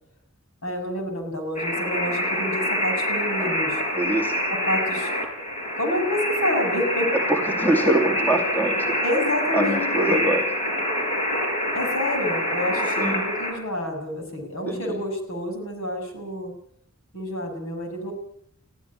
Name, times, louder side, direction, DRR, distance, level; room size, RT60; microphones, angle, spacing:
voice 1, 0.6-3.8 4.5-5.1 5.8-7.1 9.0-10.2 11.7-16.5 17.1-18.1, left 1 dB, 70° left, 4 dB, 6.7 m, -28 dB
sound 1, 1.6-13.5, equal, 30° left, 4.8 m, -26 dB
voice 2, 3.9-4.4 7.1-9.0 9.5-10.5 13.0-13.2 14.7-15.0, right 1 dB, 10° left, 4 dB, 2.5 m, -24 dB
22.0 x 15.0 x 9.7 m, 0.68 s
head